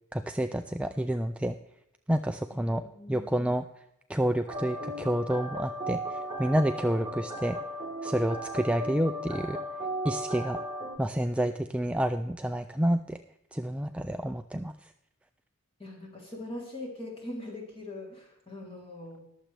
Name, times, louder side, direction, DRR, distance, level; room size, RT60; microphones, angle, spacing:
voice 1, 0.1-1.5 2.1-2.8 3.1-3.6 4.1-7.6 8.0-9.6 10.0-10.6 11.0-13.2 13.5-14.9, right 1 dB, 5° right, 7 dB, 0.3 m, -29 dB
voice 2, 2.5-3.5 15.8-19.3, left 1 dB, 25° left, -2 dB, 3.3 m, -42 dB
sound 1, 4.5-11.0, right 1 dB, 25° right, 1.2 m, -36 dB
20.5 x 7.3 x 3.4 m, 0.82 s
head